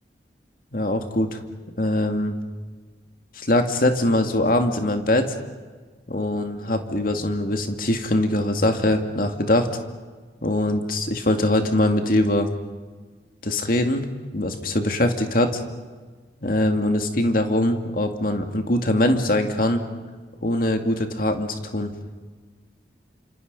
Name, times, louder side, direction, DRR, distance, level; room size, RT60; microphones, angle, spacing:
voice 1, 0.7-1.4 1.8-2.4 3.4-5.4 6.1-9.7 10.4-12.5 13.4-14.0 14.3-15.6 16.4-19.8 20.4-21.9, left 1 dB, 50° left, 5 dB, 2.3 m, -22 dB
29.0 x 27.0 x 5.4 m, 1.4 s
head